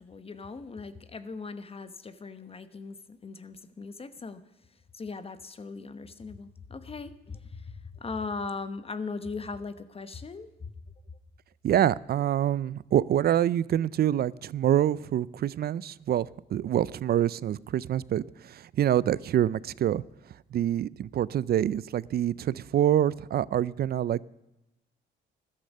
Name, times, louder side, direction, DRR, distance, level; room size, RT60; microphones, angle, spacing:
voice 1, 0.0-4.4 4.9-10.7, left 4 dB, 30° left, 0.9 m, -39 dB
voice 2, 11.6-20.0 20.5-24.2, right 11 dB, 50° right, 0.4 m, -26 dB
13.5 x 11.5 x 5.4 m
cardioid pair, 90°, 20 cm